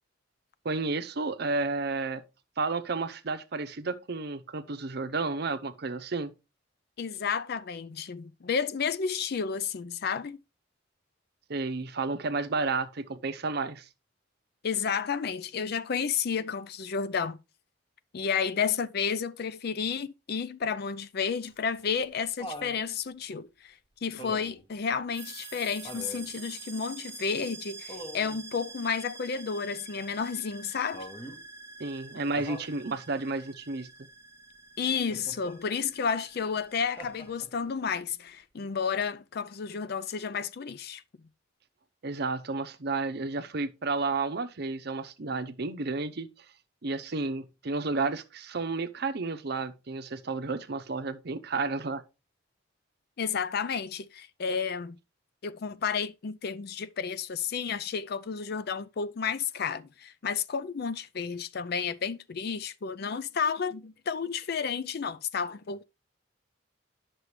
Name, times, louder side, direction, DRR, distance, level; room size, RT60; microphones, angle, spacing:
voice 1, 0.6-2.2 2.6-6.3 11.5-13.9 31.8-33.9 42.0-46.3 46.8-52.0, right 3 dB, 55° right, 0.7 m, -32 dB
voice 2, 7.0-10.4 14.6-17.4 18.1-23.7 24.0-31.1 34.8-41.0 53.2-55.0 55.4-65.8, left 6 dB, 50° left, 0.4 m, -31 dB
Laughter, 21.5-22.8 24.2-24.7 25.8-26.3 27.9-28.4 30.9-31.4 32.4-32.7 35.1-35.6 37.0-37.6 39.0-39.1, equal, 25° left, 1.3 m, -43 dB
sound 1, 25.1-37.4, right 4 dB, 15° right, 0.8 m, -47 dB
9.5 x 6.1 x 3.2 m
head